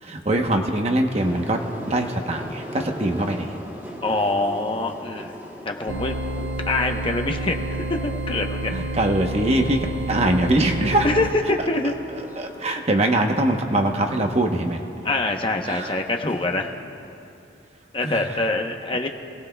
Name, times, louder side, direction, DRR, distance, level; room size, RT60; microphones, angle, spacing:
voice 1, 0.0-1.6 1.9-3.6 8.7-9.8 10.1-11.1 12.4-14.8 15.6-16.0 18.0-18.3, right 1 dB, 35° right, 4 dB, 0.9 m, -22 dB
sound 1, 1.1-16.7, equal, 10° right, 2.1 m, -41 dB
voice 2, 4.0-5.3 5.6-6.2 6.7-8.7 11.0-11.9 15.0-16.7 17.9-19.1, left 2 dB, 25° left, 3 dB, 0.9 m, -25 dB
Brass instrument, 5.9-13.0, right 1 dB, 50° right, 2.4 m, -44 dB
sound 2, 5.9-11.3, right 2 dB, 70° right, 0.7 m, -29 dB
28.0 x 18.5 x 2.3 m, 2.7 s
head